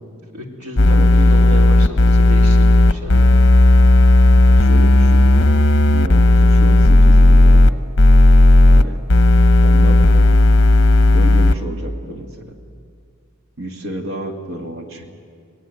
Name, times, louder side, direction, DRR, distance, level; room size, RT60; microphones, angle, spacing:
voice 1, 0.3-3.3, equal, 90° right, 1 dB, 3.7 m, -31 dB
sound 1, 0.8-7.7 8.0-8.8 9.1-11.5, left 2 dB, 55° left, 0.9 m, -11 dB
voice 2, 0.9-1.3 4.2-5.3 5.8-7.6 8.7-9.0 9.6-10.1 11.1-12.5 13.6-15.1, equal, 65° right, 4 dB, 2.1 m, -30 dB
25.5 x 19.0 x 9.3 m, 2.2 s
head